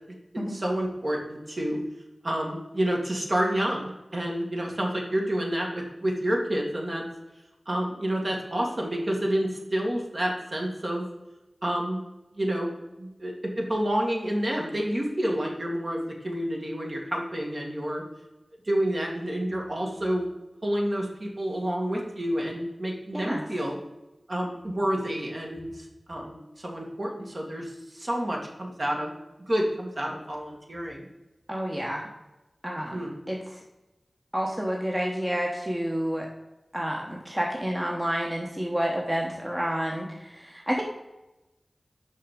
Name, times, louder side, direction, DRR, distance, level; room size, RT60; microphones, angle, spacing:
voice 1, 0.3-1.8 2.2-7.0 7.7-11.1 11.6-12.0 12.3-12.7 13.0-18.0 18.6-20.3 20.6-23.8 24.3-29.1 29.5-31.1 32.7-33.1, right 1 dB, 50° right, -1 dB, 1.8 m, -29 dB
voice 2, 23.1-23.5 31.5-32.1 32.6-33.4 34.3-36.3 36.7-40.8, equal, 15° right, -1 dB, 1.0 m, -29 dB
5.9 x 5.5 x 5.0 m, 1.0 s
wide cardioid pair, 65°, 0 cm